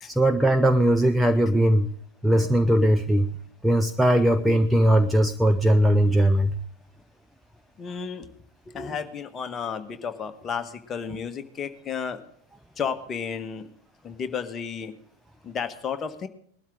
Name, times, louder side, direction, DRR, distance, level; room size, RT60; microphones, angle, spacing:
voice 1, 0.1-1.9 2.2-3.3 3.6-6.5, right 1 dB, ahead, 7 dB, 0.7 m, -20 dB
voice 2, 7.8-8.3 8.6-12.2 12.8-13.7 14.0-14.9 15.4-16.3, left 6 dB, 25° left, 7 dB, 1.4 m, -32 dB
20.0 x 12.5 x 3.7 m, 0.62 s
figure-of-eight pair, 90°, 0 cm